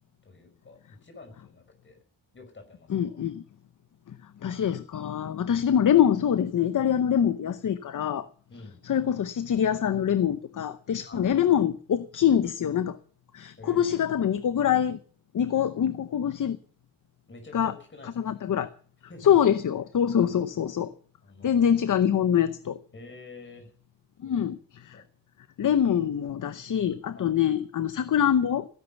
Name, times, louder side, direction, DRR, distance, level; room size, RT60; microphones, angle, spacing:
voice 1, 0.2-2.0 2.3-3.2 8.5-8.9 11.1-11.3 13.6-14.1 17.3-18.4 19.1-19.3 20.2-20.5 21.2-21.5 22.9-23.7 24.2-24.5 24.9-25.0 27.1-27.4, left 3 dB, 25° left, 4 dB, 5.2 m, -48 dB
voice 2, 2.9-3.4 4.1-4.2 4.4-8.3 8.8-13.0 13.3-15.0 15.3-16.6 17.5-17.7 18.2-18.7 19.2-20.9 21.4-22.8 24.2-25.0 25.6-28.7, left 9 dB, 40° left, 12 dB, 0.8 m, -24 dB
16.0 x 11.0 x 7.0 m, 0.44 s
wide cardioid pair, 170°, 47 cm